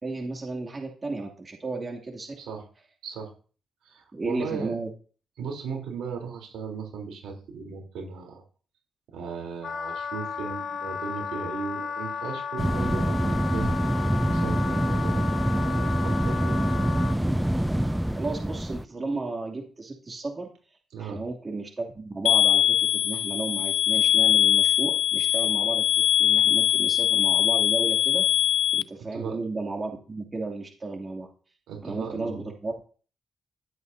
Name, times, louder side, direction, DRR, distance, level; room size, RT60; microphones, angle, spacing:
voice 1, 0.0-2.3 4.1-4.9 18.1-20.5 21.0-25.9 26.2-28.3 28.7-31.3 31.8-32.8, right 3 dB, 40° right, 1 dB, 2.6 m, -33 dB
voice 2, 3.0-3.3 3.8-4.8 5.4-8.4 9.1-13.7 14.3-15.3 15.6-16.6 20.9-21.2 29.1-29.4 31.7-32.5, right 5 dB, 75° right, 2 dB, 3.5 m, -36 dB
Wind instrument woodwind instrument, 9.6-17.2, left 6 dB, 60° left, 1.0 m, -34 dB
sound 1, 12.6-18.8, right 1 dB, 5° right, 0.6 m, -25 dB
sound 2, 22.3-28.8, left 11 dB, 80° left, 0.5 m, -22 dB
16.5 x 8.3 x 2.7 m, 0.40 s
hypercardioid pair, 40°, 0 cm